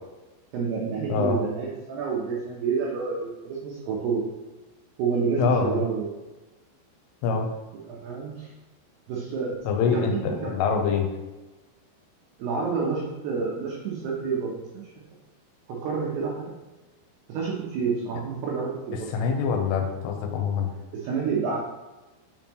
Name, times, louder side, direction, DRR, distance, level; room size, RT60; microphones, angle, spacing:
voice 1, 0.5-4.2 5.0-6.1 7.9-8.5 9.1-9.6 9.9-10.8 12.4-14.8 15.7-16.5 17.3-19.1 20.9-21.6, right 5 dB, 85° right, -3 dB, 2.3 m, -29 dB
voice 2, 5.4-5.8 7.2-7.5 9.6-11.1 19.1-20.7, left 6 dB, 85° left, 3 dB, 3.2 m, -25 dB
6.8 x 5.3 x 3.0 m, 1.1 s
omnidirectional pair, 5.8 m